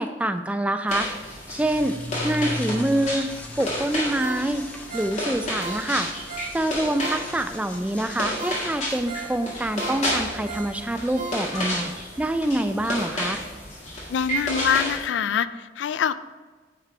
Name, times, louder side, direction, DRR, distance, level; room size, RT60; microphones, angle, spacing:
voice 1, 0.0-2.0 2.2-3.3 3.6-4.6 4.9-6.1 6.5-11.9 12.2-13.4, right 1 dB, 5° right, 9 dB, 0.3 m, -26 dB
sound 1, 0.9-15.0, equal, 40° left, 1.7 m, -31 dB
sound 2, 1.2-8.8, left 1 dB, 10° left, 0.7 m, -38 dB
Ringtone, 4.2-7.6 8.0-8.1 8.4-11.8 12.2-12.3, right 3 dB, 55° right, 1.9 m, -38 dB
voice 2, 14.1-16.2, left 8 dB, 85° left, 14 dB, 0.3 m, -24 dB
9.9 x 3.3 x 4.9 m, 1.4 s
head